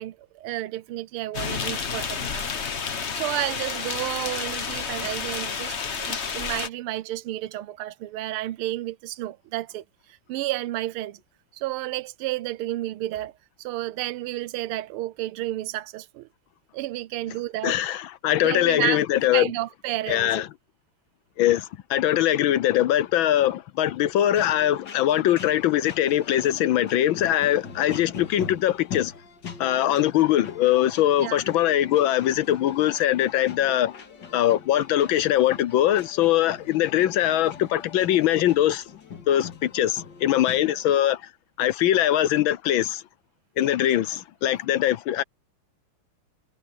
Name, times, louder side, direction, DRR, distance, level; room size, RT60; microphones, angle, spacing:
voice 1, 0.0-2.5 2.8-11.2 11.5-13.3 13.6-16.3 16.7-17.8 18.4-19.0 19.3-20.4 31.2-31.4, right 15 dB, 90° right, 1.5 m, -31 dB
sound 1, 1.3-6.7, left 6 dB, 40° left, 1.2 m, -30 dB
voice 2, 17.6-19.5 20.1-20.5 21.4-29.1 29.6-34.0 34.3-38.8 39.3-41.3 41.6-43.0 43.6-45.2, left 12 dB, 75° left, 1.5 m, -22 dB
sound 2, 24.3-40.9, left 6 dB, 55° left, 2.6 m, -42 dB
omnidirectional pair, 2.3 m